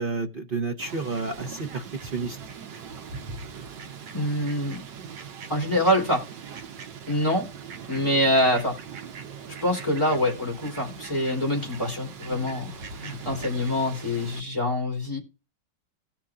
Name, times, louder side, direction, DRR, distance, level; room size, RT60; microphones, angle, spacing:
voice 1, 0.0-2.4, right 3 dB, 55° right, 0.6 m, -30 dB
Fowl, 0.8-14.4, right 6 dB, 70° right, 1.5 m, -41 dB
voice 2, 4.1-4.9 5.5-6.2 7.1-7.5 7.9-8.8 9.5-15.2, left 1 dB, 15° left, 3.4 m, -25 dB
17.0 x 6.0 x 2.5 m
omnidirectional pair, 2.1 m